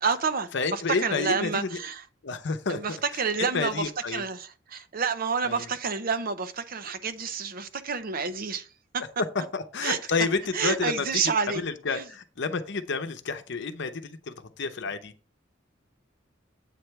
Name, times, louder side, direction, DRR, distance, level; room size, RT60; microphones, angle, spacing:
voice 1, 0.0-2.0 2.7-8.7 9.8-10.0 10.5-11.6 11.9-12.0, right 5 dB, 50° right, 0.7 m, -29 dB
voice 2, 0.5-1.8 2.2-4.2 5.4-5.7 9.5-11.2 11.5-15.1, left 4 dB, 65° left, 0.8 m, -30 dB
8.4 x 3.3 x 5.8 m
head